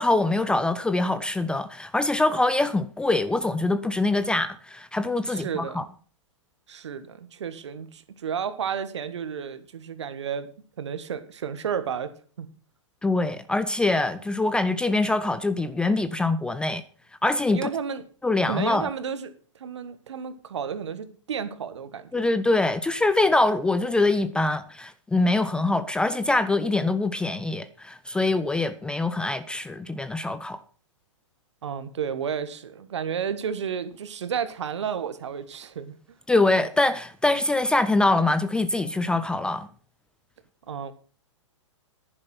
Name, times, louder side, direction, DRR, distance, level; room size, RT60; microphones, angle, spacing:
voice 1, 0.0-5.8 13.0-16.8 17.2-17.7 18.2-18.9 22.1-30.6 36.3-39.7, left 2 dB, 5° left, 0.5 m, -24 dB
voice 2, 5.3-5.9 6.7-10.5 10.8-12.5 17.5-18.0 18.4-22.2 31.6-35.9 40.7-40.9, right 7 dB, 60° right, 1.5 m, -32 dB
11.0 x 10.0 x 5.6 m
figure-of-eight pair, 110°, 16 cm